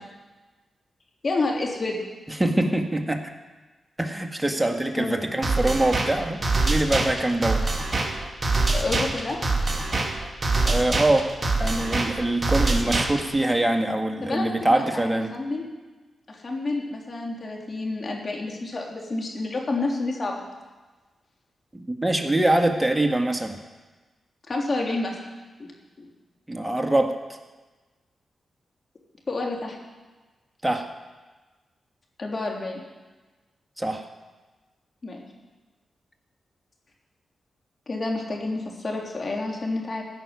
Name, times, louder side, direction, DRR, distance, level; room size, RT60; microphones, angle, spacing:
voice 1, 1.2-2.0 5.0-5.2 8.7-9.4 14.2-15.7 16.3-20.5 24.5-25.2 25.6-26.1 29.3-29.8 32.2-32.8 35.0-35.2 37.9-40.0, left 2 dB, 50° left, -1 dB, 3.5 m, -29 dB
voice 2, 2.3-3.3 4.0-7.6 10.7-11.3 11.6-15.3 21.7-23.6 26.5-27.2 30.6-30.9 33.8-34.1, right 1 dB, 15° right, 5 dB, 1.9 m, -24 dB
sound 1, 5.4-13.4, right 2 dB, 35° right, 2.4 m, -25 dB
15.5 x 6.5 x 9.7 m, 1.3 s
supercardioid pair, 40°, 0 cm